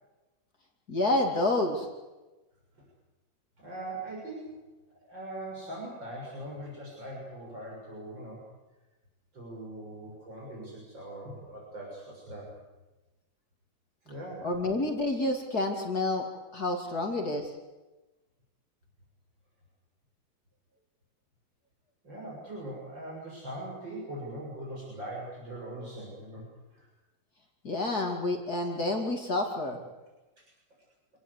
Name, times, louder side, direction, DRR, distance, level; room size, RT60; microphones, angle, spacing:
voice 1, 0.9-1.9 14.4-16.2 16.5-17.5 27.6-29.8, left 2 dB, 55° left, 2 dB, 3.1 m, -29 dB
voice 2, 3.6-4.6 5.1-8.4 9.3-12.5 14.0-14.5 22.0-26.9 30.4-30.5, right 1 dB, 80° right, -3 dB, 7.6 m, -41 dB
27.0 x 18.5 x 8.2 m, 1.1 s
omnidirectional pair, 2.0 m